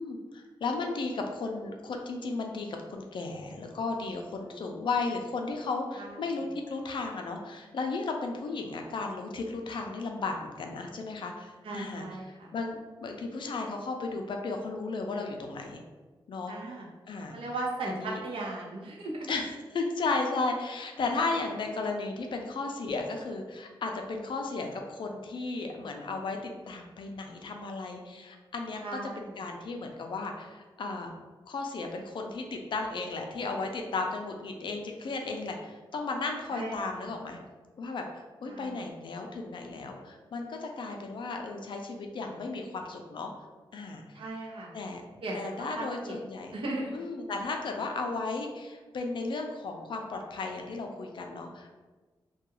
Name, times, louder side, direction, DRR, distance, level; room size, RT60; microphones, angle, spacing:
voice 1, 0.0-15.8 16.3-16.6 17.1-17.4 17.9-18.2 19.3-26.4 26.7-31.1 31.5-37.4 37.8-43.3 43.7-44.2 44.7-45.0 45.3-46.5 46.9-51.8, left 3 dB, 65° left, 3 dB, 0.4 m, -35 dB
voice 2, 11.6-12.5 16.5-16.9 17.3-19.1 28.8-29.3 36.5-37.1 38.5-38.8 44.1-44.7 45.2-45.4 45.7-46.1 46.5-46.9, right 2 dB, 85° right, -2 dB, 0.6 m, -37 dB
2.3 x 2.2 x 3.0 m, 1.3 s
wide cardioid pair, 110°, 9 cm